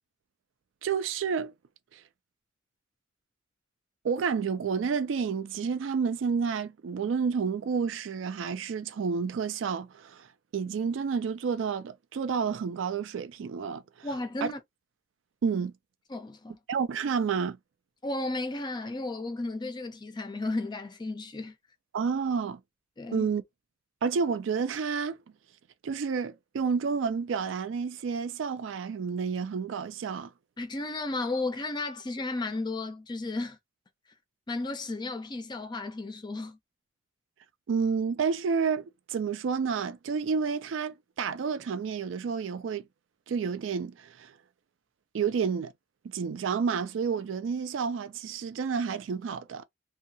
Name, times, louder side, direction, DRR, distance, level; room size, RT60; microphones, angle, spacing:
voice 1, 0.8-1.5 1.9-2.0 4.0-14.1 14.4-14.5 15.4-15.7 16.7-17.6 21.9-22.6 23.1-23.4 24.0-25.2 25.8-30.3 37.7-42.8 43.3-44.3 45.1-45.7 46.0-49.6, right 6 dB, 75° right, 0.4 m, -30 dB
voice 2, 14.0-14.6 16.1-16.6 18.0-21.5 23.0-23.3 30.6-33.6 34.5-36.6, left 2 dB, 25° left, 0.4 m, -34 dB
2.7 x 2.2 x 2.6 m
head